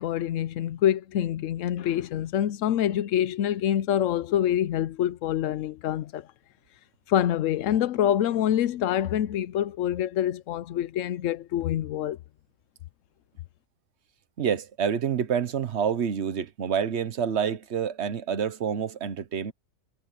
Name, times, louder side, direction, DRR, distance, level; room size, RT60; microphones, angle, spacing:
voice 1, 0.0-6.3 7.1-12.2, left 11 dB, 90° left, 1.0 m, -26 dB
voice 2, 14.4-19.5, right 7 dB, 60° right, 1.3 m, -28 dB
omnidirectional pair, 1.3 m